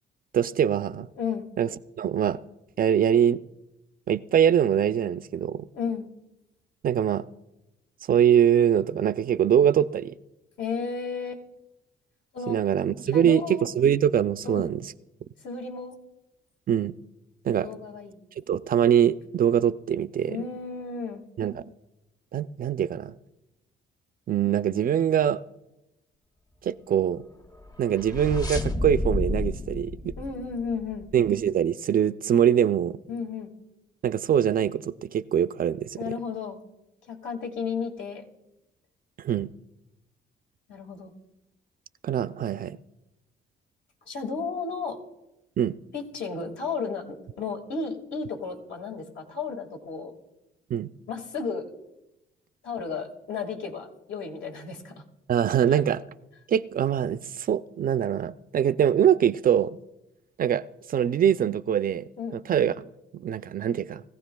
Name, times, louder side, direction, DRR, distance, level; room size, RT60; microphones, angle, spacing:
voice 1, 0.3-1.1 1.6-1.7 2.0-2.4 2.8-3.4 4.1-5.7 6.8-7.2 8.1-10.2 12.5-14.9 16.7-16.9 17.4-17.7 18.5-20.5 21.4-21.6 22.3-23.1 24.3-25.4 26.6-27.2 27.8-30.1 31.1-33.0 34.0-36.1 39.2-39.5 42.0-42.8 45.6-45.8 50.7-50.9 55.3-56.0 56.5-59.8 60.4-62.8 63.1-64.0, right 9 dB, 45° right, 13 dB, 0.4 m, -23 dB
voice 2, 1.2-1.5 5.7-6.1 10.6-11.4 12.3-12.6 13.1-13.7 14.4-14.7 15.4-16.0 17.6-18.2 20.3-21.2 30.2-31.1 33.1-33.5 36.0-36.6 37.1-38.3 40.7-41.1 44.1-45.0 45.9-50.1 51.1-51.7 52.6-55.0 55.7-55.8 62.2-62.4, left 5 dB, 70° left, 2 dB, 2.0 m, -33 dB
sound 1, 27.6-31.2, left 2 dB, 20° left, 0.8 m, -31 dB
20.5 x 15.0 x 2.3 m, 0.94 s
cardioid pair, 90°, 20 cm